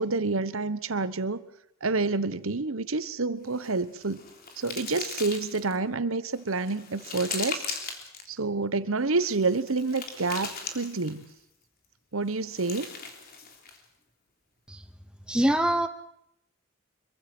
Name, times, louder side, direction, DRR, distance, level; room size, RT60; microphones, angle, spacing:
voice 1, 0.0-1.4 1.8-4.2 4.6-7.6 8.3-11.3 12.1-12.9, right 3 dB, 75° right, 14 dB, 1.1 m, -28 dB
sound 1, 3.5-5.8 6.3-8.3 9.2-11.3 12.3-13.8, left 5 dB, 45° left, 3.4 m, -39 dB
voice 2, 15.3-15.9, right 1 dB, 5° right, 7 dB, 0.8 m, -24 dB
25.0 x 23.5 x 6.1 m, 0.74 s
head